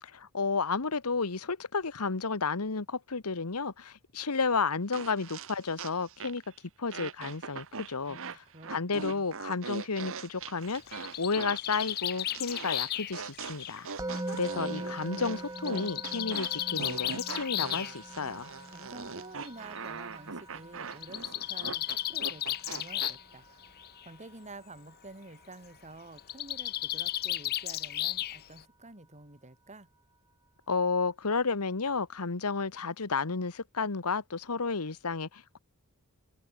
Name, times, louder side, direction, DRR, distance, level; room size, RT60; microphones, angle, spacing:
voice 1, 0.0-6.4 6.8-8.2 8.7-13.9 14.3-18.5 30.7-35.6, left 4 dB, 85° left, 1.3 m, -32 dB
sound 1, 4.9-6.5 6.9-23.1, right 5 dB, 65° right, 1.6 m, -41 dB
voice 2, 8.1-9.3 18.7-23.6 24.0-29.9, right 2 dB, 30° right, 5.1 m, -49 dB
Bird, 10.7-14.5 15.6-17.9 19.0-19.1 19.4-19.5 19.8-19.9 20.9-23.3 23.6-24.1 26.2-28.6, left 13 dB, 45° left, 0.4 m, -34 dB
Musical instrument, 14.0-25.1, right 1 dB, 15° right, 2.0 m, -43 dB
head